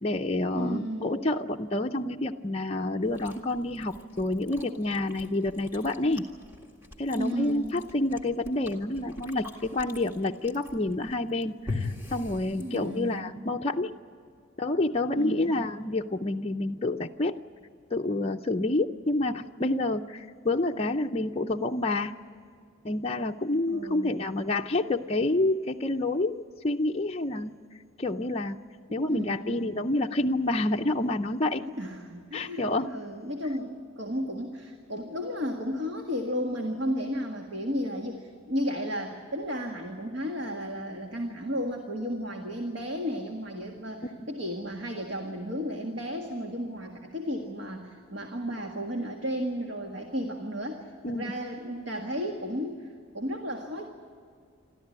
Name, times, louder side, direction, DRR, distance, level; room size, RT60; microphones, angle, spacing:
voice 1, 0.0-6.3 7.0-13.9 14.6-17.4 17.9-22.1 22.8-27.6 28.0-28.6 28.9-31.6 32.3-32.9 44.0-44.3 51.0-51.3, left 2 dB, 30° left, 1 dB, 0.5 m, -28 dB
voice 2, 0.5-1.2 7.2-7.8 12.6-13.5 15.1-15.7 23.7-24.2 28.9-29.8 31.8-53.9, equal, 60° right, 2 dB, 1.8 m, -33 dB
Chewing mastication, 3.0-13.2, left 3 dB, 10° right, 2.0 m, -42 dB
28.0 x 13.5 x 9.8 m, 2.2 s
head